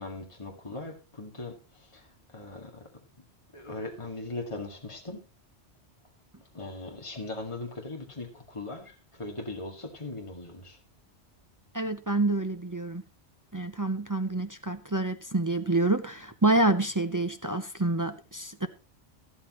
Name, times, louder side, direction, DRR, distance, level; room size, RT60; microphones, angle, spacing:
voice 1, 0.0-2.1 2.3-2.8 3.5-5.2 6.5-10.8, left 2 dB, 25° left, 2.2 m, -39 dB
voice 2, 11.7-13.0 13.5-18.7, right 2 dB, 20° right, 0.6 m, -27 dB
13.5 x 12.5 x 3.1 m
omnidirectional pair, 1.1 m